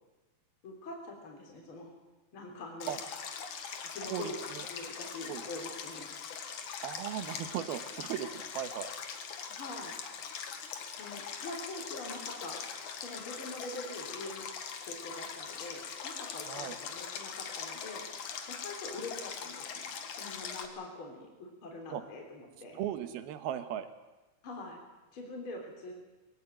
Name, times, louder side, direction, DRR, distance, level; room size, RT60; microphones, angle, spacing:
voice 1, 0.6-1.9 2.3-3.0 3.9-4.3 4.7-6.1 9.6-9.9 11.0-12.7 13.0-14.5 14.8-18.0 18.5-22.8 24.4-24.8 25.1-25.9, left 2 dB, 35° left, 1 dB, 3.9 m, -44 dB
Stream, 2.8-20.7, left 7 dB, 60° left, 2.8 m, -42 dB
voice 2, 4.0-4.6 5.3-5.4 6.8-8.9 16.4-16.8 21.9-22.0 22.7-23.9, right 10 dB, 85° right, 10 dB, 3.2 m, -37 dB
21.5 x 17.5 x 9.0 m, 1.2 s
omnidirectional pair, 4.3 m